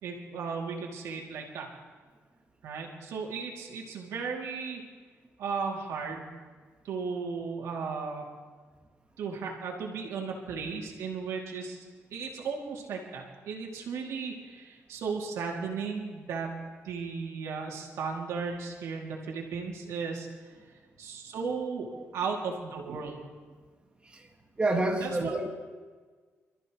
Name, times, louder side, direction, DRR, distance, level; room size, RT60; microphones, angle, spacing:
voice 1, 0.0-1.7 2.6-4.8 5.4-6.3 6.8-8.3 9.2-11.8 12.1-16.5 16.8-20.5 21.0-23.2 25.0-25.3, right 5 dB, 90° right, -1 dB, 2.7 m, -35 dB
voice 2, 24.6-25.5, right 2 dB, 20° right, 2 dB, 1.8 m, -29 dB
27.0 x 14.0 x 3.2 m, 1.5 s
cardioid pair, 95°, 5 cm